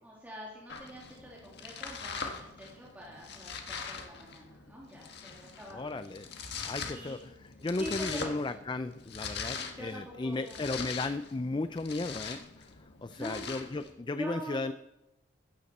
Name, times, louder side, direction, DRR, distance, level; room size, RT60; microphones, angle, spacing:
voice 1, 0.0-5.9 6.6-7.2 7.8-8.5 9.5-10.6 13.2-14.7, equal, 10° right, -5 dB, 2.7 m, -45 dB
Domestic sounds home sounds, 0.7-13.9, left 5 dB, 60° left, 1.7 m, -42 dB
voice 2, 5.7-6.3 6.6-12.7 13.0-14.7, left 2 dB, 25° left, 11 dB, 0.4 m, -35 dB
15.0 x 14.0 x 4.2 m, 0.96 s
head